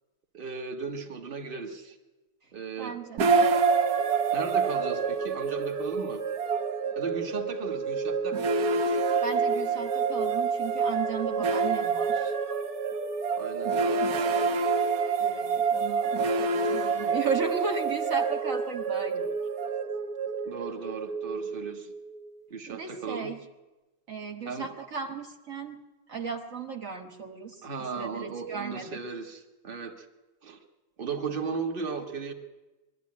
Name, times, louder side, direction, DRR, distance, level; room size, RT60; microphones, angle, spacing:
voice 1, 0.3-2.0 2.5-3.0 4.3-6.2 7.0-8.4 13.4-14.1 20.5-21.9 22.5-23.3 24.5-24.7 27.6-30.1 30.4-30.6 31.0-32.3, right 5 dB, 35° right, 4 dB, 1.8 m, -36 dB
voice 2, 2.8-3.5 9.2-12.3 15.2-19.3 22.7-23.4 24.1-25.8 26.1-29.0, right 5 dB, 60° right, 2 dB, 1.7 m, -35 dB
sound 1, 3.2-22.3, right 5 dB, 85° right, 1.6 m, -27 dB
22.0 x 13.0 x 9.7 m, 1.1 s
omnidirectional pair, 1.6 m